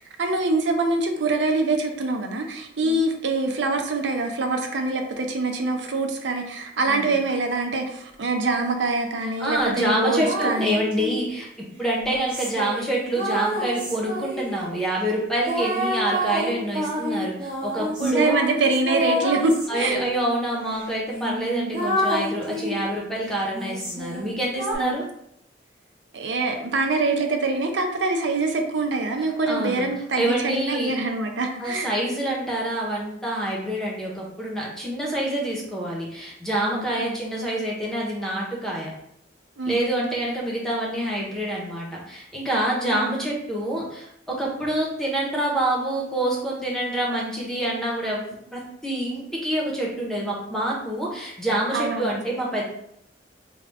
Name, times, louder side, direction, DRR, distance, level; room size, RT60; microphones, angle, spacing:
voice 1, 0.0-10.7 18.0-20.0 24.7-25.0 26.1-31.9 36.8-37.2 39.6-39.9 42.9-43.2 51.7-52.1, right 3 dB, 90° right, 4 dB, 0.6 m, -24 dB
voice 2, 9.4-11.5 11.8-18.4 19.7-25.1 29.5-29.8 30.1-31.0 31.6-38.9 39.6-52.6, right 1 dB, 5° left, -4 dB, 0.9 m, -27 dB
sound 1, 9.6-11.3 12.1-14.6 15.5-20.1 20.7-20.8 21.1-22.9 23.5-24.7, equal, 25° right, 1.1 m, -28 dB
4.9 x 2.3 x 3.4 m, 0.75 s
head